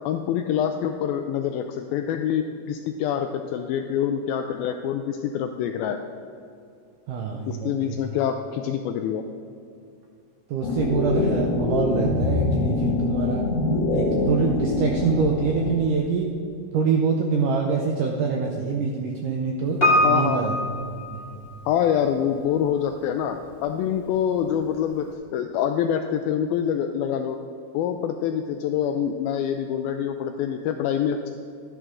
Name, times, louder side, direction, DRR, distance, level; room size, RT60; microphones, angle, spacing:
voice 1, 0.1-6.0 7.5-9.2 20.0-20.6 21.7-25.1 25.3-27.4 27.7-31.3, left 9 dB, 85° left, 6 dB, 2.1 m, -26 dB
voice 2, 7.1-8.0 10.5-13.5 13.9-16.3 16.7-20.6 21.1-21.3, right 5 dB, 80° right, 1 dB, 1.8 m, -25 dB
sound 1, 10.6-15.7, left 2 dB, 55° left, 2.0 m, -24 dB
Piano, 19.8-21.9 22.1-22.2, left 1 dB, 25° left, 1.4 m, -23 dB
12.0 x 10.5 x 3.8 m, 2.4 s
omnidirectional pair, 4.7 m